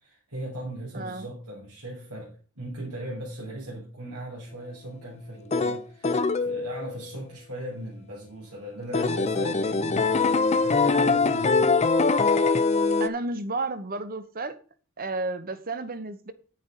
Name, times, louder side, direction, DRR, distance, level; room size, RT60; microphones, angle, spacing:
voice 1, 0.0-11.7, right 1 dB, 90° right, 3.5 m, -38 dB
voice 2, 0.9-1.3 13.0-14.6 15.0-16.3, right 2 dB, 40° right, 0.9 m, -32 dB
sound 1, 5.5-7.0 8.9-13.1, left 4 dB, 30° left, 0.6 m, -23 dB
9.9 x 9.4 x 3.8 m
head